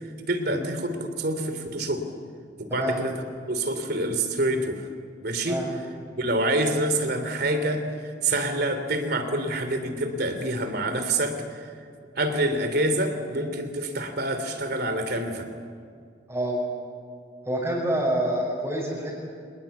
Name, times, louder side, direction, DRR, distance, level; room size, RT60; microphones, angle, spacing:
voice 1, 0.3-2.0 2.6-3.1 3.5-4.8 5.2-5.6 6.2-7.8 8.2-11.7 12.2-15.5, right 1 dB, 55° right, 8 dB, 3.1 m, -26 dB
voice 2, 16.3-16.6 17.5-19.2, right 1 dB, 15° right, -6 dB, 5.6 m, -27 dB
26.5 x 21.0 x 8.4 m, 2.3 s
head